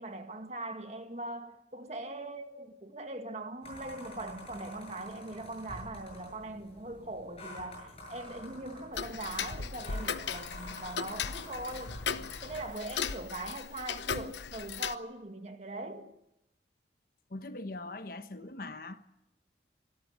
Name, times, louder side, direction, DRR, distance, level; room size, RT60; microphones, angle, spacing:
voice 1, 0.0-12.0 12.4-16.1, right 2 dB, 40° right, 1.8 m, -41 dB
sound 1, 3.6-12.6, left 1 dB, 35° left, 8.0 m, -48 dB
Tick-tock, 8.9-14.9, left 6 dB, 80° left, 0.9 m, -37 dB
voice 2, 17.3-19.0, left 2 dB, 50° left, 1.1 m, -41 dB
25.0 x 13.0 x 9.9 m
head